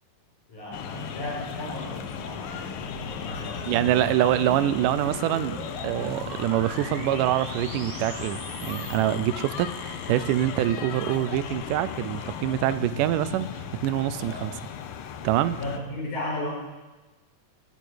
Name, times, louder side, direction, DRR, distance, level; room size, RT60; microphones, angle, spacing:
voice 1, 0.5-4.1 14.2-14.5 15.6-16.5, left 1 dB, 70° left, -4 dB, 6.9 m, -35 dB
sound 1, 0.7-15.8, left 8 dB, 90° left, 1.2 m, -36 dB
sound 2, 2.3-9.0, right 4 dB, 65° right, 2.9 m, -42 dB
voice 2, 3.7-13.5 13.8-14.5 15.2-15.6, right 12 dB, 85° right, 14 dB, 2.2 m, -25 dB
13.0 x 9.3 x 9.5 m, 1.2 s
omnidirectional pair, 3.7 m